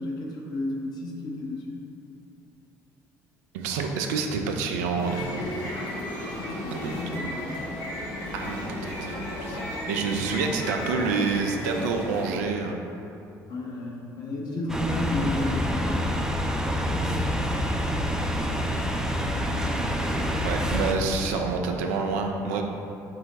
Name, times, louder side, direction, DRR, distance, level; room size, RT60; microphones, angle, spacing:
voice 1, 0.0-1.8 6.2-7.6 13.5-17.4 20.3-20.7, left 2 dB, 55° left, -2 dB, 0.8 m, -33 dB
voice 2, 3.5-5.6 6.7-6.9 8.3-9.6 9.9-12.8 20.4-22.6, right 4 dB, 80° right, 3 dB, 0.4 m, -28 dB
sound 1, 4.8-12.4, left 1 dB, 70° left, 1.2 m, -34 dB
sound 2, 14.7-21.0, equal, 5° right, 0.4 m, -27 dB
4.6 x 2.1 x 4.0 m, 2.8 s
hypercardioid pair, 60°, 9 cm